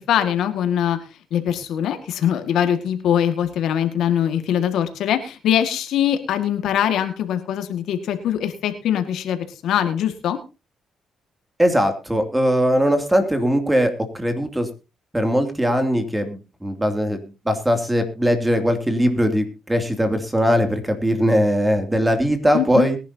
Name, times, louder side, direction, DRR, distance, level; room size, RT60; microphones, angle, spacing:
voice 1, 0.1-1.0 1.3-10.4 22.5-22.9, left 10 dB, 80° left, 8 dB, 1.9 m, -22 dB
voice 2, 11.6-14.7 15.1-23.0, equal, 10° right, 6 dB, 2.6 m, -20 dB
21.5 x 11.0 x 2.8 m, 0.30 s
cardioid pair, 90°, 0 cm